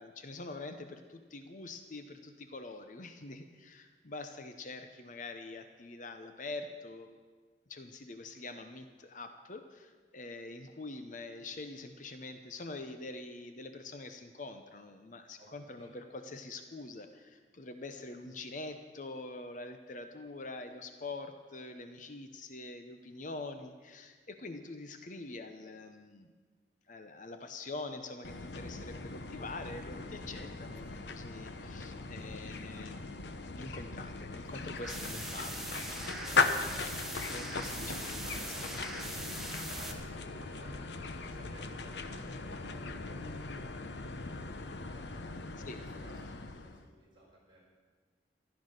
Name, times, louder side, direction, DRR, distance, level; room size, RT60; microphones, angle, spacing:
voice 1, 0.0-7.1 7.7-26.3 26.9-36.8 37.3-37.9 38.3-38.4 38.9-39.1 45.6-45.8, left 2 dB, 45° left, 7 dB, 0.8 m, -45 dB
voice 2, 15.4-15.9 37.8-45.3 45.8-47.6, right 1 dB, 25° right, -6 dB, 5.7 m, -58 dB
sound 1, 28.2-46.9, left 3 dB, 75° left, 0.9 m, -38 dB
sound 2, 34.8-39.9, right 1 dB, ahead, 1.2 m, -41 dB
15.0 x 11.5 x 6.6 m, 1.5 s
head